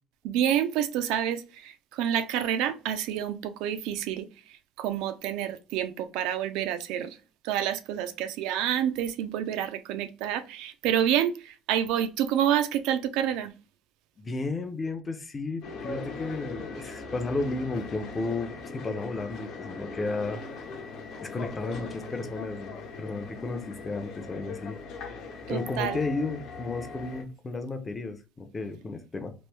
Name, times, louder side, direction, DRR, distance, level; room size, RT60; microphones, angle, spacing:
voice 1, 0.2-7.2 7.4-13.5 25.5-26.0, right 10 dB, 85° right, 0.4 m, -28 dB
voice 2, 14.2-20.4 21.2-24.8 25.5-29.3, left 3 dB, 20° left, 0.5 m, -33 dB
sound 1, 15.6-27.2, left 4 dB, 60° left, 0.9 m, -40 dB
3.0 x 2.5 x 3.3 m
cardioid pair, 145°, 0 cm